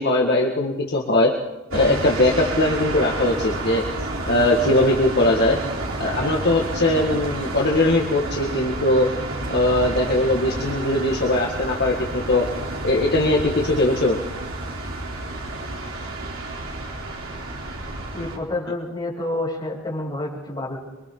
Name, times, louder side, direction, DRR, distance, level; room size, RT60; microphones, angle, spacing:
voice 1, 0.0-1.3 1.7-3.8 4.3-5.6 6.0-9.1 9.5-12.4 12.8-14.2, left 1 dB, 50° left, -1 dB, 2.0 m, -20 dB
sound 1, 1.7-18.4, right 2 dB, 75° right, 3.8 m, -30 dB
voice 2, 18.1-20.8, left 2 dB, 20° left, -4 dB, 7.5 m, -28 dB
27.5 x 24.0 x 4.0 m, 1.1 s
head